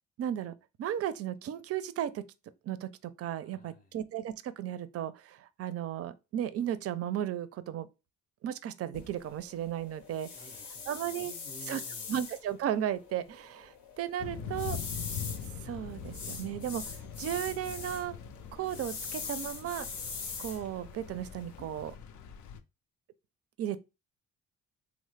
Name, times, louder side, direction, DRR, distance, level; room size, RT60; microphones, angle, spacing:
voice 1, 0.2-0.5 0.8-2.2 2.7-7.9 8.4-10.3 10.9-11.3 11.7-11.8 12.1-14.8 15.6-16.8 17.2-18.1 18.5-19.9 20.4-21.9 23.6-23.8, right 10 dB, 55° right, 0.4 m, -35 dB
voice 2, 3.4-3.9 10.3-12.1, left 2 dB, 25° left, 0.6 m, -53 dB
sound 1, 8.9-21.9, left 5 dB, 90° left, 0.9 m, -43 dB
Thunder / Rain, 14.2-22.6, left 7 dB, 75° left, 0.5 m, -43 dB
3.1 x 2.0 x 3.2 m
cardioid pair, 90°, 30 cm